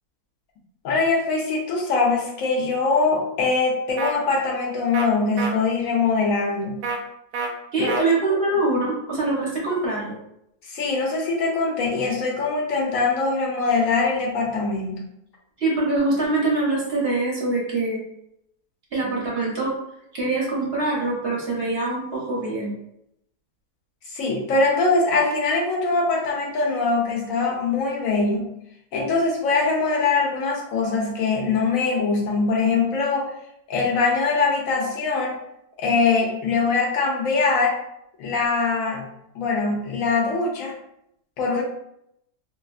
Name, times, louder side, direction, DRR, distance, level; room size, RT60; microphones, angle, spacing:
voice 1, 0.8-6.8 7.8-8.0 10.6-15.0 24.1-28.5 28.9-33.3 33.7-35.4 35.8-37.7 38.2-39.0 39.3-40.7 41.4-41.6, left 4 dB, 65° left, -1 dB, 1.0 m, -22 dB
sound 1, 4.0-4.1 4.9-5.1 5.4-5.5 6.8-7.0 7.3-7.5 7.9-8.0, right 4 dB, 80° right, 1.1 m, -27 dB
voice 2, 7.7-10.2 15.6-18.0 18.9-19.8 20.1-22.8, right 2 dB, 50° right, -5 dB, 0.8 m, -24 dB
2.7 x 2.5 x 2.4 m, 0.77 s
omnidirectional pair, 1.7 m